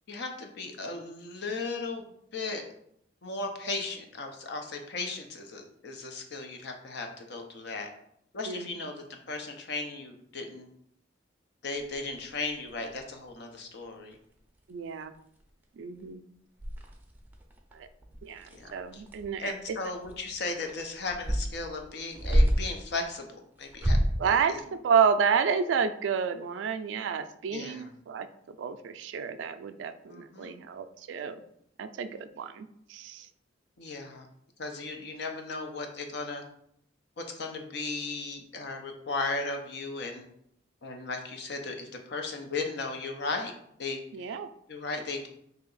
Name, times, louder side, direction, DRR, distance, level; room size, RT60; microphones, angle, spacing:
voice 1, 0.1-2.6 3.2-7.9 8.3-10.7 11.6-14.2 18.5-19.0 19.4-24.0 24.3-24.6 27.5-27.9 30.1-30.5 33.8-34.3 34.6-36.4 37.2-40.3 40.8-43.5 43.8-44.4 44.7-45.3, left 3 dB, 65° left, 4 dB, 0.6 m, -36 dB
voice 2, 8.5-8.8 14.7-15.1 15.8-16.2 17.7-17.9 18.2-19.5 24.2-31.4 31.8-33.3 44.1-44.5, right 6 dB, 75° right, 10 dB, 0.3 m, -30 dB
sound 1, 11.8-13.3 13.8-13.9 14.1-14.4 14.7-14.8 15.1-15.6 16.0-16.1 16.6-22.8 23.6-24.3, equal, 10° right, 0.5 m, -30 dB
3.2 x 2.8 x 3.9 m, 0.72 s
head